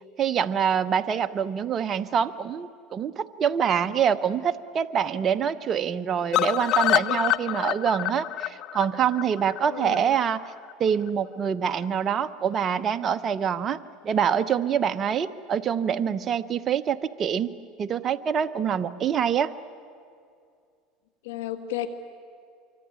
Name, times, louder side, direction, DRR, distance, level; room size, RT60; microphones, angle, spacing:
voice 1, 0.2-10.4 10.8-13.8 14.0-17.5 17.8-19.5, right 8 dB, 35° right, 9 dB, 0.9 m, -25 dB
sound 1, 6.3-10.3 10.7-10.8 11.1-11.2 11.5-11.6, left 15 dB, 55° left, 0.7 m, -26 dB
voice 2, 9.7-10.1 21.2-21.9, left 13 dB, 85° left, 10 dB, 1.5 m, -32 dB
25.0 x 24.5 x 9.7 m, 2.3 s
supercardioid pair, 110°, 0 cm